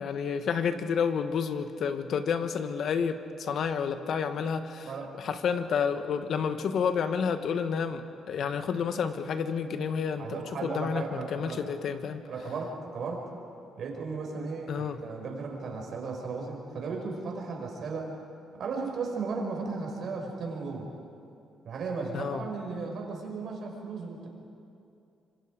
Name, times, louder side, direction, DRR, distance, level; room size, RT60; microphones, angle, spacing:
voice 1, 0.0-12.2 14.7-15.0 22.1-22.5, left 6 dB, 65° left, 8 dB, 1.4 m, -30 dB
voice 2, 10.2-11.6 12.3-13.3 13.8-18.1 18.5-20.9 21.6-24.3, right 4 dB, 60° right, 1 dB, 5.1 m, -35 dB
26.5 x 25.5 x 5.1 m, 2.6 s
cardioid pair, 90°, 0 cm